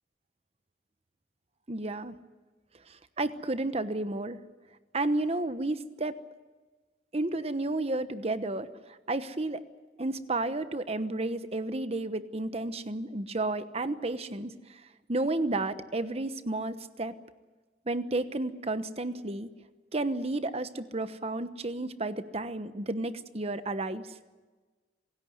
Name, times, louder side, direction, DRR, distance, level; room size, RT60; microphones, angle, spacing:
voice 1, 1.7-2.1 2.9-4.4 4.9-6.1 7.1-9.6 10.0-14.8 15.1-17.1 17.9-19.5 19.9-24.1, right 2 dB, 35° right, 12 dB, 1.1 m, -32 dB
26.5 x 16.5 x 9.4 m, 1.3 s
head